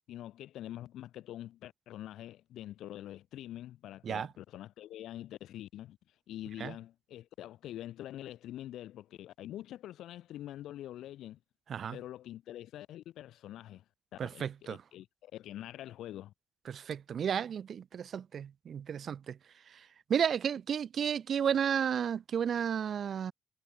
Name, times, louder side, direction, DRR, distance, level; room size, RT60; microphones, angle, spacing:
voice 1, 0.1-11.4 11.9-13.8 14.1-16.3, left 13 dB, 80° left, 2.7 m, -45 dB
voice 2, 14.2-14.8 16.7-19.4 20.1-23.3, right 8 dB, 55° right, 0.8 m, -32 dB
cardioid pair, 90°, 0 cm